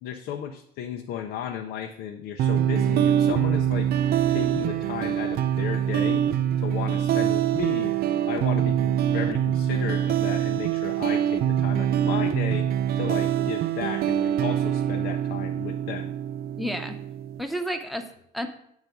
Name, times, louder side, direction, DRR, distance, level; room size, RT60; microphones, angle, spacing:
voice 1, 0.0-3.9 4.3-6.3 6.6-8.0 8.2-12.7 12.9-16.1, left 9 dB, 85° left, 4 dB, 0.6 m, -34 dB
sound 1, 2.4-17.4, right 10 dB, 65° right, 0.4 m, -24 dB
voice 2, 16.6-17.0 17.4-18.5, equal, ahead, 5 dB, 0.8 m, -31 dB
7.9 x 4.0 x 5.8 m, 0.70 s
cardioid pair, 110°, 17 cm